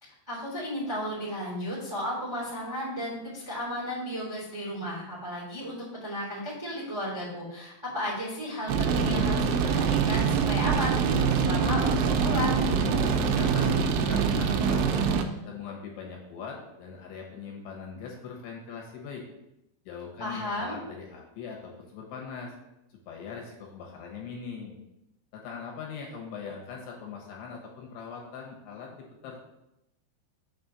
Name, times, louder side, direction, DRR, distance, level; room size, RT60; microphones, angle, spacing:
voice 1, 0.0-12.6 20.2-20.8, equal, 10° right, -9 dB, 2.0 m, -34 dB
sound 1, 8.7-15.2, right 6 dB, 85° right, 3.0 m, -24 dB
voice 2, 13.0-15.1 15.5-19.2 19.9-22.5 23.1-24.8 25.3-29.4, left 6 dB, 70° left, -1 dB, 3.3 m, -41 dB
7.2 x 4.4 x 6.6 m, 0.88 s
omnidirectional pair, 5.4 m